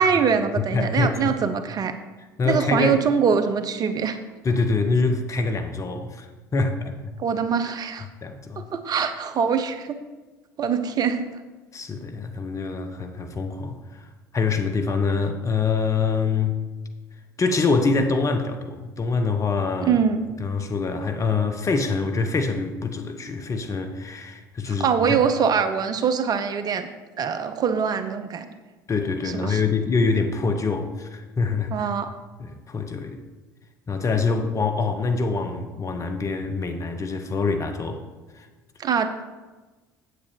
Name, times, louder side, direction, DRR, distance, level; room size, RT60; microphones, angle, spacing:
voice 1, 0.0-1.9 2.4-4.2 7.2-8.1 8.6-10.0 10.6-11.4 19.8-20.3 24.7-26.9 27.2-28.5 29.2-29.6 31.7-32.2 38.8-39.2, right 6 dB, 40° right, 9 dB, 0.7 m, -23 dB
voice 2, 0.6-1.4 2.4-3.0 4.4-6.2 6.5-7.1 8.2-8.7 11.7-13.8 14.3-16.6 17.4-20.0 20.4-25.2 28.9-31.9 32.4-33.2 33.9-38.0 38.4-38.5, left 4 dB, 30° left, 7 dB, 1.1 m, -25 dB
8.4 x 8.1 x 4.6 m, 1.2 s
figure-of-eight pair, 60°, 10 cm